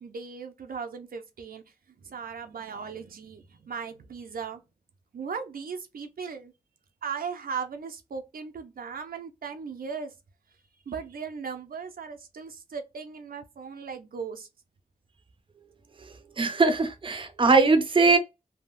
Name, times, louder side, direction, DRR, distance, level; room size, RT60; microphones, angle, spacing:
voice 1, 0.0-1.6 2.0-4.6 5.1-6.5 7.0-10.1 10.9-14.5, right 6 dB, 80° right, 0.6 m, -37 dB
voice 2, 16.4-18.2, right 3 dB, 35° right, 0.5 m, -21 dB
3.4 x 2.2 x 2.5 m
wide cardioid pair, 105°, 15 cm